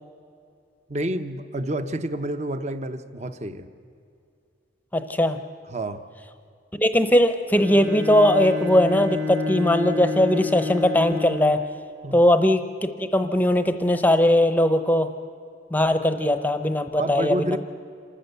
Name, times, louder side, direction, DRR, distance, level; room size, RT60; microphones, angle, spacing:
voice 1, 0.9-3.7 5.7-6.0 12.0-12.2 16.9-17.6, right 1 dB, 35° right, 10 dB, 0.8 m, -29 dB
voice 2, 4.9-5.4 6.8-11.6 12.1-15.1 15.7-17.6, left 1 dB, 10° left, 9 dB, 0.7 m, -20 dB
Bowed string instrument, 7.5-11.7, left 3 dB, 70° right, 1.4 m, -30 dB
27.0 x 13.5 x 8.1 m, 2.4 s
head